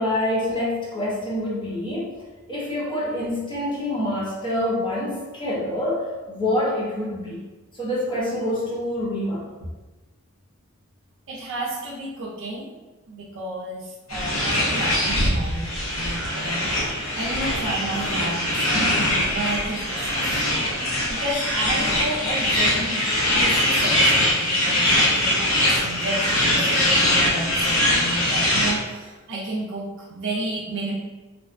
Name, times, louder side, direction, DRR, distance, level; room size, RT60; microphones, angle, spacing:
voice 1, 0.0-2.1 2.5-7.4 7.7-9.5, left 1 dB, 20° left, -7 dB, 0.6 m, -26 dB
voice 2, 11.3-12.7 13.1-16.9 17.2-20.2 21.1-30.9, right 2 dB, 60° right, -4 dB, 0.4 m, -32 dB
sound 1, 14.1-28.8, left 1 dB, 70° left, 0.8 m, -22 dB
2.7 x 2.2 x 2.4 m, 1.2 s
head